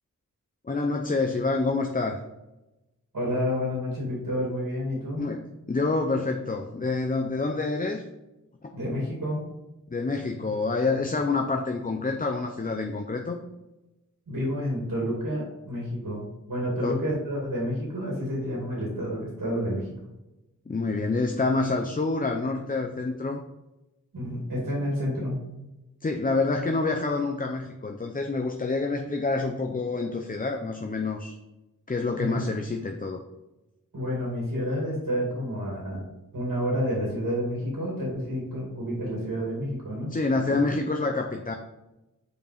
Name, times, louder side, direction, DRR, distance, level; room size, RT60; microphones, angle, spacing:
voice 1, 0.6-2.2 5.2-8.0 9.9-13.4 16.8-17.0 20.7-23.4 26.0-31.4 31.9-33.2 40.1-41.5, left 3 dB, 25° left, 3 dB, 0.5 m, -27 dB
voice 2, 3.1-5.3 8.7-9.4 14.3-19.9 24.1-25.4 32.2-32.5 33.9-36.0 36.3-40.1 40.5-40.6, equal, 75° right, -4 dB, 2.3 m, -29 dB
5.2 x 4.8 x 5.0 m, 0.98 s
wide cardioid pair, 85°, 33 cm